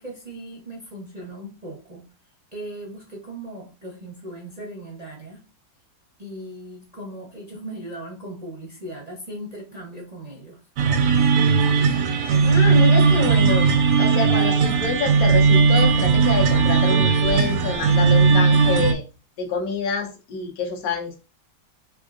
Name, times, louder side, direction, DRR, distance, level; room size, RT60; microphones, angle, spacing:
voice 1, 0.0-2.0 2.5-5.4 6.2-10.6 12.2-12.8, right 1 dB, 50° right, -2 dB, 0.4 m, -38 dB
sound 1, 10.8-18.9, right 5 dB, 85° right, 0.7 m, -17 dB
voice 2, 12.4-13.7 14.0-19.0 19.4-21.2, left 4 dB, 60° left, 3 dB, 1.1 m, -27 dB
3.6 x 3.5 x 2.4 m, 0.32 s
omnidirectional pair, 2.0 m